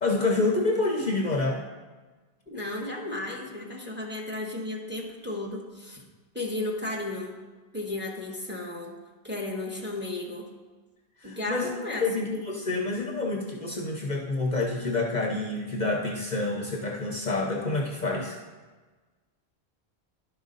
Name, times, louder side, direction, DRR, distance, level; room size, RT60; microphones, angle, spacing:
voice 1, 0.0-1.6 11.2-11.7 12.0-18.4, left 3 dB, 45° left, 0 dB, 0.8 m, -28 dB
voice 2, 2.5-6.0 6.3-7.4 7.7-8.9 9.2-10.5 11.2-12.3, left 2 dB, 10° right, -1 dB, 1.1 m, -34 dB
11.0 x 5.1 x 3.9 m, 1.3 s
omnidirectional pair, 1.1 m